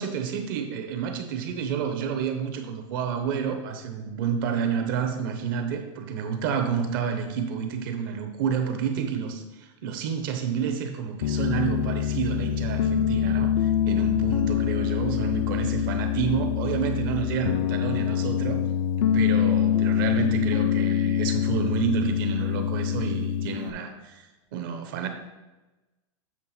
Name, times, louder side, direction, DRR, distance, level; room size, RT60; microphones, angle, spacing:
voice 1, 0.0-18.6 19.1-25.1, right 7 dB, 40° right, 6 dB, 0.9 m, -29 dB
Piano, 11.2-23.7, left 9 dB, 75° left, 0.5 m, -25 dB
7.5 x 3.5 x 6.1 m, 1.1 s
supercardioid pair, 175°, 16 cm